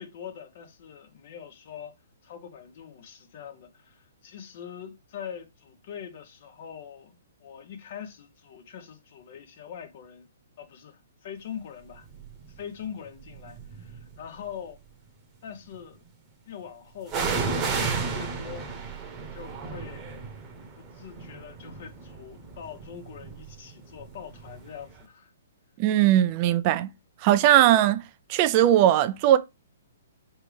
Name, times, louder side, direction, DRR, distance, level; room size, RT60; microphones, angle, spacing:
voice 1, 0.0-1.9 2.2-7.1 7.4-10.3 10.6-12.1 12.5-14.8 15.4-16.0 16.4-18.7 19.3-20.1 20.8-25.3, left 8 dB, 50° left, 1.1 m, -43 dB
sound 1, 12.1-12.5 13.2-14.2 17.1-24.7 25.0-25.1, right 4 dB, 20° right, 1.1 m, -33 dB
voice 2, 25.8-26.9 27.2-28.0 28.3-29.4, right 12 dB, 35° right, 0.4 m, -19 dB
4.8 x 3.4 x 3.3 m
hypercardioid pair, 140°, 0 cm